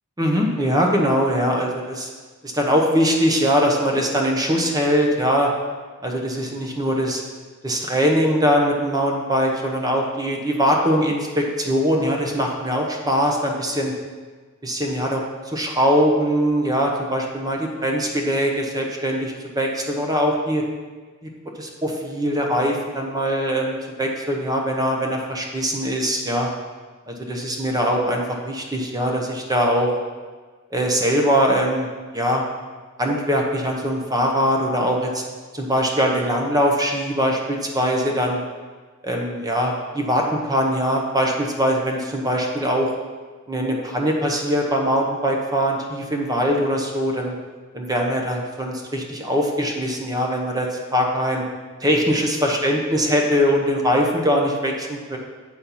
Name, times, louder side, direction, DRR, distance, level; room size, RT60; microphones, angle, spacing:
voice 1, 0.2-2.1 2.4-5.5 6.0-7.2 7.6-13.9 14.6-20.6 21.6-26.5 27.1-30.0 30.7-31.9 32.1-32.4 33.0-35.2 35.5-38.4 39.0-42.9 43.5-47.4 47.7-51.4 51.8-55.2, equal, 20° right, 0 dB, 0.8 m, -22 dB
8.0 x 4.3 x 5.6 m, 1.4 s
head